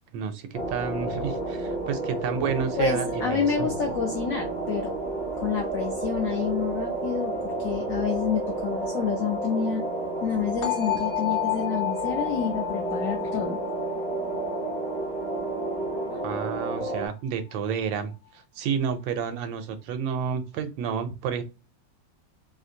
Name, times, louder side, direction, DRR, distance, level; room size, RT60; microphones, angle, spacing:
voice 1, 0.1-3.7 16.2-21.4, right 7 dB, 90° right, 8 dB, 1.3 m, -30 dB
sound 1, 0.5-17.1, right 2 dB, 40° left, 0.6 m, -31 dB
voice 2, 2.8-5.0 5.4-9.8 10.2-13.6 16.1-16.2, left 7 dB, 75° left, 2 dB, 0.7 m, -29 dB
sound 2, 5.2-10.2, right 8 dB, 75° right, 1.1 m, -37 dB
sound 3, 10.6-16.5, left 16 dB, 60° left, 1.1 m, -32 dB
3.2 x 2.5 x 2.6 m, 0.29 s
omnidirectional pair, 2.0 m